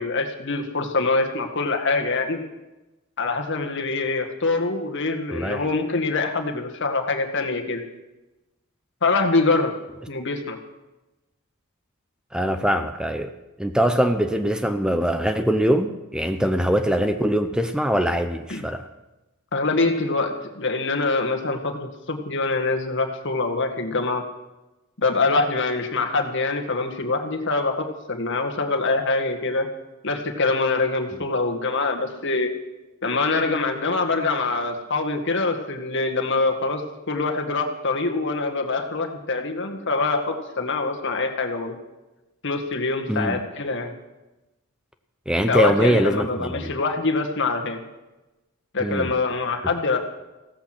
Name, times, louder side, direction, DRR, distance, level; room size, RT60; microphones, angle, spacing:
voice 1, 0.0-2.4 3.2-7.8 9.0-9.7 10.1-10.6 18.5-18.6 19.5-24.2 25.0-29.7 30.0-32.5 33.0-36.8 37.1-41.8 42.4-43.9 45.5-47.8 48.7-50.0, left 3 dB, 60° left, 4 dB, 1.9 m, -24 dB
voice 2, 5.3-5.7 12.3-13.3 13.6-18.9 31.1-31.2 43.1-43.4 45.3-46.7 48.8-49.1, equal, 5° right, 7 dB, 0.7 m, -22 dB
16.0 x 14.0 x 6.1 m, 1.0 s
head